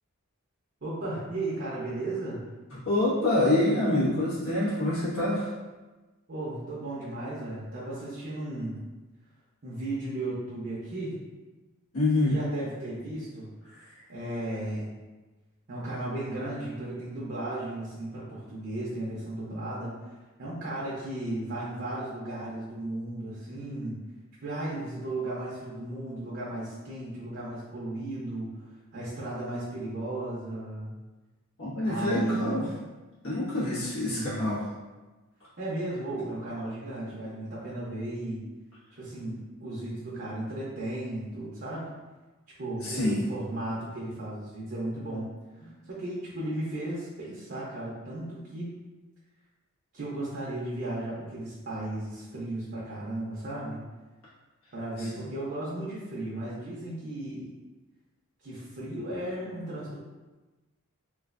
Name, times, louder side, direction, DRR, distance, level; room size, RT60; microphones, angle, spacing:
voice 1, 0.8-2.4 6.3-8.8 9.6-11.1 12.2-13.5 14.1-14.9 15.7-19.9 20.4-24.0 24.4-28.5 28.9-30.9 31.8-32.6 34.1-34.5 35.6-38.4 38.9-41.9 42.6-45.3 45.6-48.8 49.9-53.8 54.7-57.5 58.4-60.0, right 1 dB, 50° right, -7 dB, 0.6 m, -35 dB
voice 2, 2.7-5.5 11.9-12.3 13.7-13.8 31.6-32.7 33.2-34.6 42.8-43.3 45.6-45.7 55.0-55.1, left 1 dB, 80° left, -10 dB, 1.4 m, -26 dB
3.1 x 2.4 x 2.4 m, 1.2 s
head